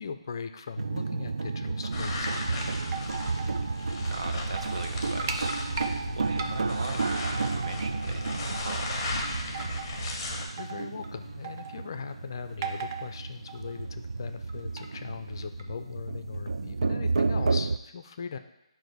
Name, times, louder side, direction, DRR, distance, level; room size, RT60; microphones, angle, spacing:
voice 1, 0.0-2.7 10.6-18.4, left 6 dB, 45° left, 8 dB, 0.4 m, -39 dB
sound 1, 0.8-17.8, right 3 dB, 90° right, 0.3 m, -32 dB
sound 2, 1.9-10.4, left 3 dB, 25° left, 0.8 m, -37 dB
sound 3, 2.1-3.6 4.0-4.1 4.4-4.9 5.2-6.0 6.4-6.9 7.3-8.2 8.5-8.8 9.2-10.0 10.5-11.1 11.4-11.9 12.6-13.2 13.5-13.8 14.5-14.9 15.6-15.7, right 6 dB, 35° right, 0.5 m, -38 dB
voice 2, 4.0-5.5 6.2-9.1, right 3 dB, 65° right, 4 dB, 0.9 m, -39 dB
7.7 x 2.6 x 5.2 m, 0.88 s
hypercardioid pair, 165°, 3 cm